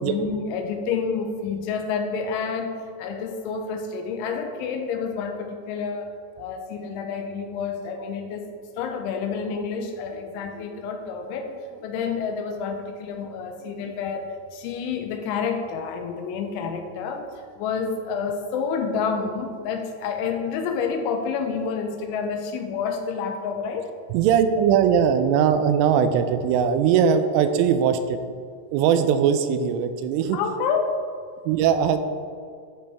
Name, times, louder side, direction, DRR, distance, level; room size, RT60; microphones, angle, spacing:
voice 1, 0.0-8.5 8.8-11.5 11.8-14.3 14.5-23.9 30.3-31.0, left 5 dB, 85° left, 4 dB, 3.0 m, -29 dB
voice 2, 10.5-10.9 13.8-13.9 24.1-28.2 28.7-30.4 31.5-32.0, right 8 dB, 85° right, 9 dB, 3.0 m, -20 dB
11.5 x 5.2 x 3.4 m, 2.2 s
omnidirectional pair, 5.7 m